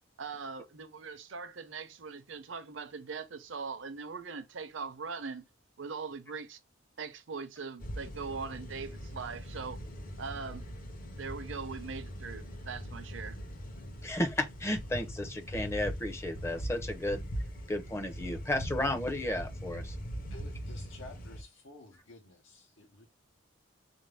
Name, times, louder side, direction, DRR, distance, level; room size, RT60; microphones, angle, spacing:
voice 1, 0.2-5.4 5.8-6.6 7.0-9.8 10.2-10.6 11.2-13.4, right 5 dB, 70° right, 0.6 m, -41 dB
sound 1, 7.8-21.4, equal, 45° left, 0.7 m, -41 dB
voice 2, 14.0-17.3 17.7-20.0, left 1 dB, 15° left, 0.5 m, -33 dB
voice 3, 20.3-23.1, left 2 dB, 80° left, 0.8 m, -52 dB
3.8 x 2.6 x 3.3 m
head